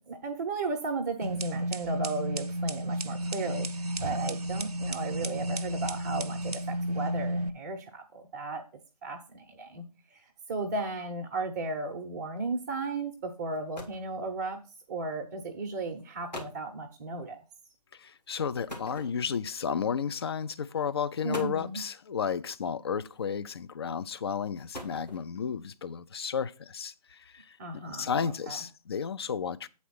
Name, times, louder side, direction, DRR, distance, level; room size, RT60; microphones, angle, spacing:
voice 1, 0.1-8.6 9.0-9.8 10.5-14.6 14.9-17.4 21.2-21.8 27.6-28.6, right 3 dB, 25° right, 0.8 m, -35 dB
sound 1, 1.2-7.5, right 1 dB, 65° right, 0.8 m, -32 dB
sound 2, 13.2-13.3 13.5-14.1 15.1-15.3 16.0-16.1 16.3-16.7 18.7-19.5 20.5-20.6 21.1-21.8 23.1-23.5 24.4-25.4, left 1 dB, 90° left, 2.5 m, -43 dB
voice 2, 18.0-29.7, left 7 dB, 40° left, 0.4 m, -33 dB
8.4 x 4.2 x 5.8 m
figure-of-eight pair, 145°, 21 cm